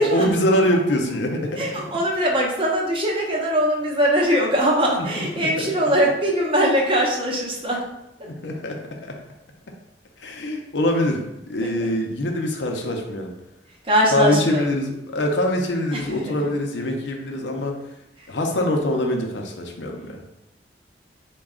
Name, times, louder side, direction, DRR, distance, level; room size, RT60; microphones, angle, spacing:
voice 1, 0.0-1.6 5.2-5.5 8.2-8.8 10.2-13.3 14.1-17.7 18.3-20.2, left 1 dB, 75° left, 2 dB, 0.6 m, -23 dB
voice 2, 1.6-7.8 11.6-11.9 13.8-14.7 15.9-16.2, equal, 30° right, -1 dB, 0.7 m, -21 dB
4.1 x 2.2 x 3.6 m, 0.89 s
head